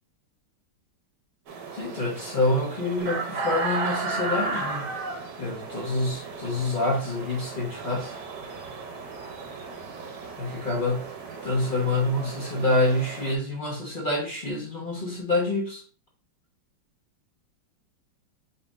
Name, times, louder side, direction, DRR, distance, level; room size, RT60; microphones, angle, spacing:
sound 1, 1.5-13.4, right 3 dB, 65° right, 1.2 m, -35 dB
voice 1, 1.7-4.9 5.4-8.1 10.4-11.1 11.4-15.8, left 2 dB, 40° left, -3 dB, 0.8 m, -27 dB
5.3 x 3.3 x 2.4 m, 0.42 s
omnidirectional pair, 2.3 m